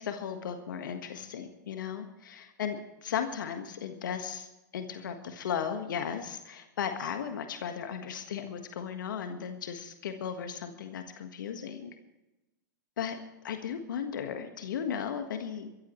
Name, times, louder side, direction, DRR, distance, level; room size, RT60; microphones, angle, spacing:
voice 1, 0.0-4.5 4.7-11.9 13.0-13.2 13.4-15.7, left 7 dB, 70° left, 6 dB, 1.6 m, -36 dB
23.0 x 14.5 x 3.2 m, 1.0 s
hypercardioid pair, 105°, 11 cm